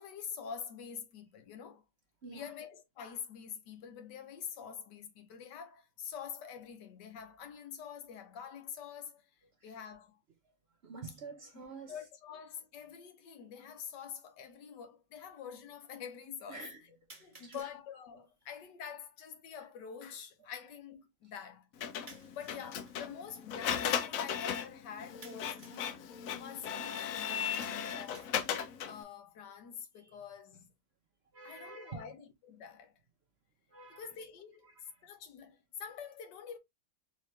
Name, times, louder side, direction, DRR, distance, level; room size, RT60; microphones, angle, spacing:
voice 1, 0.0-1.8 2.3-9.2 9.6-10.2 11.5-16.7 17.2-21.7 22.3-26.0 26.3-28.4 28.9-30.7 31.4-32.9 33.9-34.7 35.0-36.6, left 7 dB, 90° left, 1.5 m, -46 dB
voice 2, 2.2-2.5 9.4-9.7 10.8-12.0 15.2-15.3 16.5-16.9 17.2-17.7 22.6-22.7 26.9-27.1 30.0-30.2 31.3-32.1 33.7-34.1 34.7-35.1, right 4 dB, 55° right, 0.7 m, -49 dB
sound 1, 12.7-12.8 13.8-13.9 17.1-17.8 22.1-23.0 25.2-25.9 27.6-28.8, right 2 dB, 25° right, 1.1 m, -56 dB
Printer, 21.8-29.0, left 8 dB, 65° left, 0.9 m, -36 dB
4.2 x 3.0 x 3.1 m
omnidirectional pair, 1.8 m